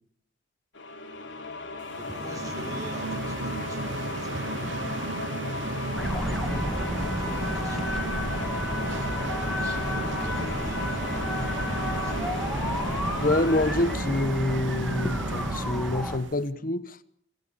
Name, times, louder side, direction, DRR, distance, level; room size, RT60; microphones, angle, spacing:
sound 1, 0.7-15.4, left 3 dB, 85° left, 3.4 m, -36 dB
voice 1, 1.9-4.9 6.0-8.0 9.1-10.8, right 1 dB, 20° right, 3.9 m, -45 dB
sound 2, 1.9-16.4, right 3 dB, 90° right, 1.1 m, -35 dB
sound 3, 5.9-16.2, equal, ahead, 2.2 m, -31 dB
voice 2, 13.2-17.0, left 2 dB, 50° left, 1.2 m, -27 dB
25.5 x 15.5 x 8.6 m
head